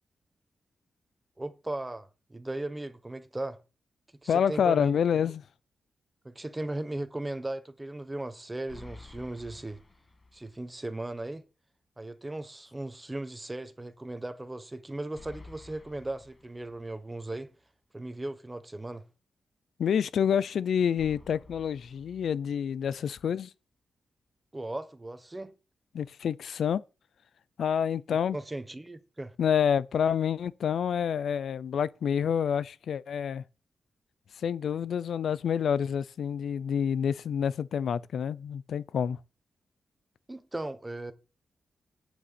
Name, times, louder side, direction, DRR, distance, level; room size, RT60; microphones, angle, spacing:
voice 1, 1.4-3.6 4.2-5.0 6.2-9.8 10.3-11.4 12.0-17.5 17.9-19.0 24.5-25.5 28.3-29.3 40.3-41.1, right 2 dB, 15° right, 1.2 m, -37 dB
voice 2, 4.3-5.4 19.8-23.5 25.9-26.8 27.6-28.4 29.4-33.4 34.4-39.2, left 8 dB, 75° left, 0.6 m, -28 dB
sound 1, 8.7-10.7 11.0-11.1 15.1-17.1 21.0-22.9, left 3 dB, 30° left, 1.6 m, -52 dB
9.4 x 7.0 x 7.0 m
wide cardioid pair, 115°, 0 cm